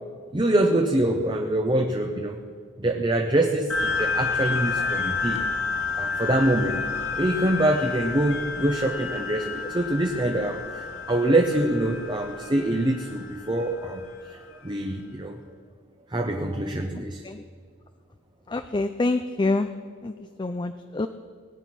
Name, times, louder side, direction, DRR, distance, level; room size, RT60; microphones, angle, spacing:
voice 1, 0.3-2.4 2.8-5.5 6.0-6.9 7.1-15.4 16.1-17.2, right 1 dB, 25° right, 3 dB, 0.8 m, -25 dB
sound 1, 3.7-14.6, left 4 dB, 70° left, 2.0 m, -30 dB
voice 2, 16.9-17.4 18.5-19.7 20.0-20.1 20.4-21.1, left 2 dB, 25° left, 9 dB, 0.4 m, -26 dB
18.5 x 9.1 x 6.1 m, 2.1 s
head